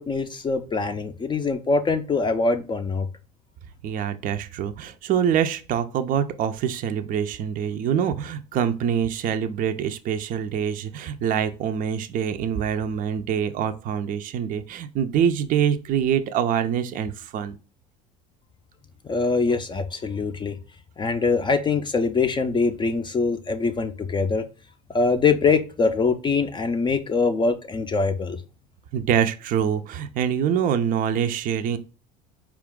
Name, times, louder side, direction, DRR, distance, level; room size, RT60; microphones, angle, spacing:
voice 1, 0.0-3.1 19.1-20.6 21.0-24.4 24.9-28.4, left 4 dB, 25° left, 8 dB, 0.5 m, -23 dB
voice 2, 3.8-17.6 28.9-31.8, right 8 dB, 45° right, 9 dB, 0.5 m, -25 dB
4.4 x 2.4 x 3.6 m, 0.34 s
hypercardioid pair, 80°, 21 cm